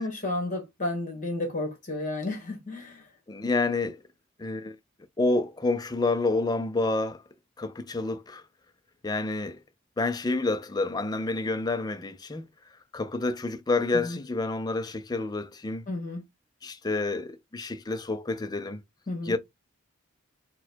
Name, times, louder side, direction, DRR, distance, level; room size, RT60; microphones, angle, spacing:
voice 1, 0.0-3.1 13.9-14.2 15.9-16.2 19.1-19.3, left 2 dB, 35° left, 1.3 m, -32 dB
voice 2, 3.3-4.0 4.4-4.8 5.2-7.2 7.6-8.4 9.0-9.6 10.0-12.4 12.9-15.8 16.6-18.8 19.3-19.4, left 3 dB, 20° left, 0.4 m, -28 dB
4.1 x 2.2 x 4.4 m
head